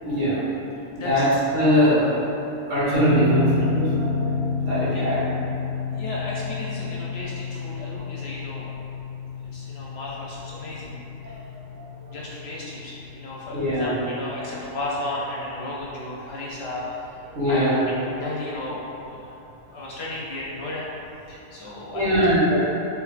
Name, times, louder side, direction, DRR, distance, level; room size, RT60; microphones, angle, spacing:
voice 1, 0.0-0.4 1.0-1.3 1.5-2.1 2.7-5.2 11.2-11.3 11.7-11.9 13.5-13.9 17.3-17.8 21.9-22.6, equal, 70° right, -11 dB, 1.8 m, -22 dB
voice 2, 0.9-1.2 4.9-5.1 5.9-8.7 9.5-11.0 11.2-11.4 12.1-19.2 19.7-20.9 21.3-22.3, left 2 dB, 60° left, -5 dB, 0.8 m, -34 dB
sound 1, 2.9-15.8, left 2 dB, 10° right, 0.7 m, -30 dB
4.7 x 3.4 x 2.4 m, 2.9 s
omnidirectional pair, 1.3 m